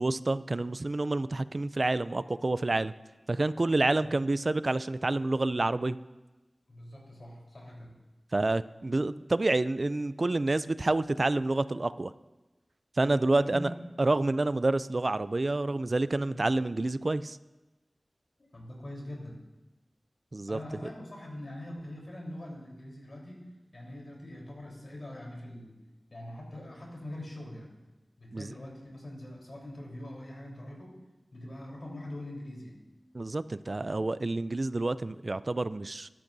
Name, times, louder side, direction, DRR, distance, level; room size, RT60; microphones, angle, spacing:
voice 1, 0.0-2.9 3.3-6.0 8.3-12.1 13.0-13.7 14.0-17.4 20.3-20.6 28.3-28.6 33.1-36.1, right 2 dB, 50° right, 15 dB, 0.3 m, -28 dB
voice 2, 6.7-7.9 13.0-13.9 16.1-16.4 18.4-19.4 20.5-23.5 23.7-25.8 26.1-27.7 28.2-31.0 31.3-32.8 34.4-34.5, left 1 dB, 60° left, -2 dB, 3.8 m, -43 dB
14.5 x 12.0 x 2.7 m, 1.1 s
wide cardioid pair, 45°, 0 cm